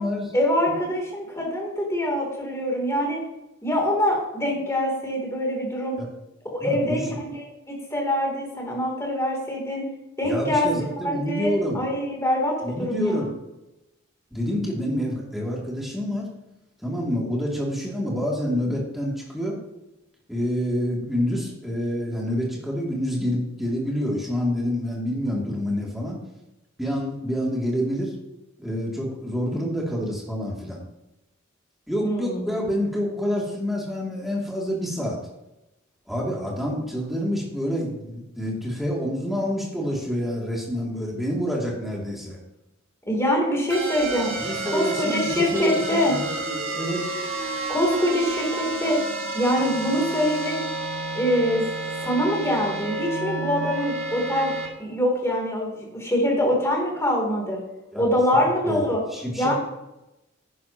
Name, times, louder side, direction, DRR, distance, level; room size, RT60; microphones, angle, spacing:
voice 1, 0.3-3.2 3.6-6.0 6.6-9.9 10.2-10.7 11.0-13.3 32.0-32.5 43.1-44.4 44.7-46.2 47.7-49.0 49.3-50.6 51.1-51.6 52.0-54.5 54.8-57.6 57.9-59.0 59.4-59.5, equal, 15° left, -1 dB, 3.1 m, -24 dB
voice 2, 6.6-7.0 10.2-11.8 12.6-13.3 14.3-16.3 16.8-19.6 20.3-26.2 26.8-28.1 28.6-30.8 31.9-35.2 36.1-42.4 44.4-47.1 57.9-58.1 58.3-58.9 59.1-59.5, equal, ahead, -4 dB, 2.6 m, -27 dB
sound 1, 43.7-54.7, right 2 dB, 70° right, 1.8 m, -30 dB
10.5 x 10.0 x 2.9 m, 0.94 s
head